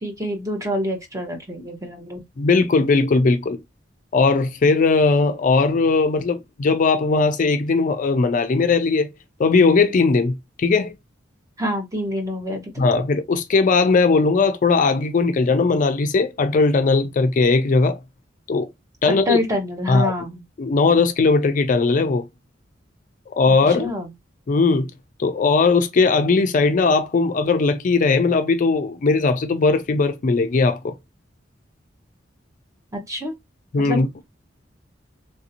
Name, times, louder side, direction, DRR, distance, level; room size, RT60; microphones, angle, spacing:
voice 1, 0.0-2.2 11.6-12.9 19.0-20.4 23.5-24.1 32.9-33.3 33.8-34.2, left 1 dB, 15° right, 0.9 m, -27 dB
voice 2, 2.4-3.6 4.1-9.1 9.4-10.9 12.8-18.0 18.5-18.7 19.0-19.4 19.9-20.1 20.6-22.2 23.4-23.9 24.5-24.9 25.2-30.9 33.7-34.1, left 4 dB, 45° left, 0.4 m, -18 dB
3.2 x 2.6 x 2.8 m
head